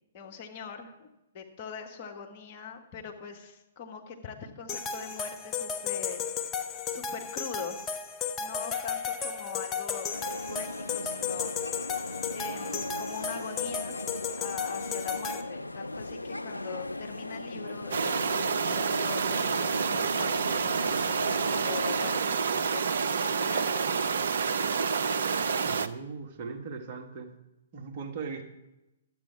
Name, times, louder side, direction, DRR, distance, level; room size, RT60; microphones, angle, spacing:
voice 1, 0.1-1.1 1.3-6.4 6.9-7.8 8.4-11.7 12.3-14.0 14.4-20.7 21.0-24.1, left 6 dB, 40° left, 2 dB, 1.4 m, -42 dB
sound 1, 4.7-15.4, left 6 dB, 20° left, 0.7 m, -34 dB
sound 2, 10.1-22.2, left 2 dB, 85° left, 0.3 m, -38 dB
sound 3, 17.9-25.9, right 5 dB, 60° right, 0.6 m, -28 dB
voice 2, 25.6-27.3 27.7-28.4, right 5 dB, 40° right, 2 dB, 1.4 m, -39 dB
12.0 x 8.3 x 4.6 m, 0.93 s
figure-of-eight pair, 120°, 0 cm